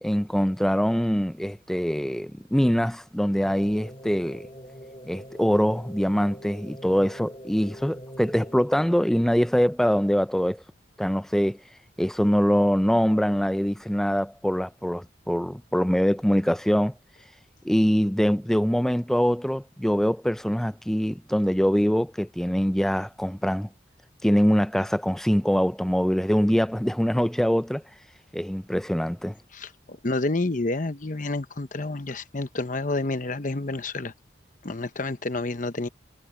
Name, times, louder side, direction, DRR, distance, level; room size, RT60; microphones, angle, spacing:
voice 1, 0.0-4.5 5.0-10.6 11.0-11.6 12.0-16.9 17.6-23.7 24.2-27.8 28.3-29.3, equal, ahead, 0.4 m, -23 dB
sound 1, 3.4-8.9, equal, 30° left, 2.1 m, -44 dB
voice 2, 29.5-34.1 34.6-35.9, left 2 dB, 45° left, 1.0 m, -29 dB
head